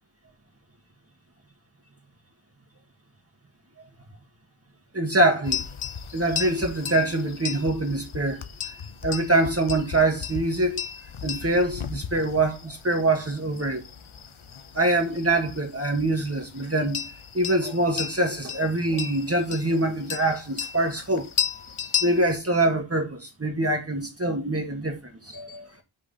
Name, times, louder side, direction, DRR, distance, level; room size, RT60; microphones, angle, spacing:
voice 1, 4.9-5.6 6.1-8.4 9.0-10.8 11.2-13.8 14.7-17.0 17.3-21.3 22.0-25.7, right 2 dB, 30° right, 1.5 m, -24 dB
sound 1, 5.4-22.4, left 8 dB, 80° left, 0.9 m, -35 dB
5.8 x 4.1 x 5.2 m
wide cardioid pair, 70°, 48 cm